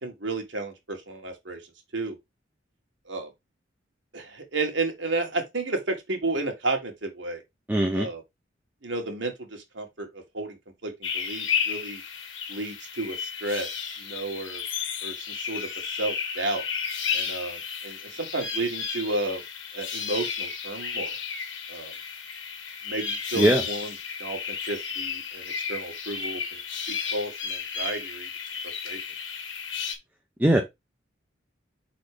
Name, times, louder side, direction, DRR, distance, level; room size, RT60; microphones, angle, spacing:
voice 1, 0.0-1.6 1.9-2.2 3.1-3.3 4.1-7.4 7.9-8.2 8.8-10.6 10.8-12.0 12.5-13.7 14.0-14.6 15.0-16.6 17.1-19.4 19.7-21.1 21.7-21.9 22.9-23.9 24.2-26.4 26.9-28.3 28.8-29.0, right 2 dB, 70° right, 1.8 m, -32 dB
voice 2, 7.7-8.1 23.4-23.6 30.4-30.6, right 1 dB, 10° right, 0.8 m, -20 dB
sound 1, 11.0-29.9, left 6 dB, 80° left, 1.5 m, -33 dB
4.8 x 4.2 x 4.9 m
head